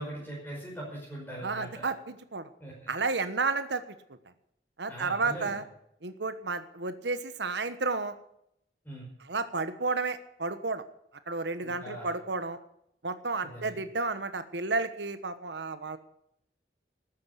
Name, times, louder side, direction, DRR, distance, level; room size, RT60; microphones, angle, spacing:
voice 1, 0.0-1.9 2.6-2.9 4.9-5.6 8.8-9.1 11.6-12.1 13.4-13.8, right 1 dB, 10° left, -5 dB, 5.4 m, -41 dB
voice 2, 1.4-2.5 2.9-3.8 4.8-5.6 6.0-8.1 9.2-10.8 11.3-12.6 13.0-16.0, right 3 dB, 85° right, 11 dB, 1.2 m, -32 dB
13.5 x 9.7 x 8.1 m, 0.74 s
head